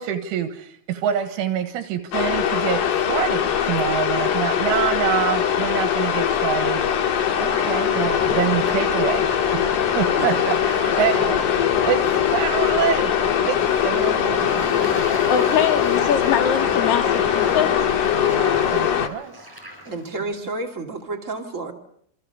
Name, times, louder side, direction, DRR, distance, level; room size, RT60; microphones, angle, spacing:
voice 1, 0.0-7.1 7.4-9.6 10.0-13.1 13.5-15.1 18.1-19.5 20.4-20.5, right 9 dB, 75° right, 8 dB, 3.7 m, -26 dB
sound 1, 2.1-19.1, left 9 dB, 55° left, 2.4 m, -21 dB
sound 2, 7.2-18.6, left 1 dB, 75° left, 9.7 m, -35 dB
Fowl / Bird / Water, 13.6-20.2, equal, 5° right, 6.4 m, -40 dB
voice 2, 15.3-17.8, left 8 dB, 40° left, 6 dB, 2.4 m, -23 dB
voice 3, 19.9-21.7, right 3 dB, 40° right, 2 dB, 1.0 m, -30 dB
27.5 x 26.0 x 6.8 m, 0.68 s
omnidirectional pair, 5.8 m